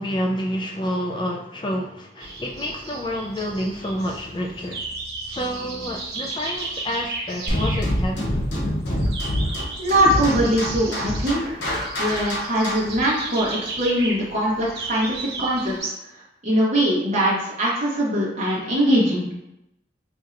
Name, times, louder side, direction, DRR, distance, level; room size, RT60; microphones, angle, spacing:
voice 1, 0.0-4.9 5.2-8.3, equal, 25° left, 0 dB, 0.3 m, -28 dB
sound 1, 2.2-15.8, right 3 dB, 65° right, 0.8 m, -35 dB
sound 2, 7.5-13.0, left 1 dB, 75° left, 0.9 m, -25 dB
voice 2, 9.8-11.6 12.0-15.1 15.4-15.9 16.4-19.3, equal, 40° right, -7 dB, 0.9 m, -21 dB
4.2 x 2.7 x 2.5 m, 0.86 s
head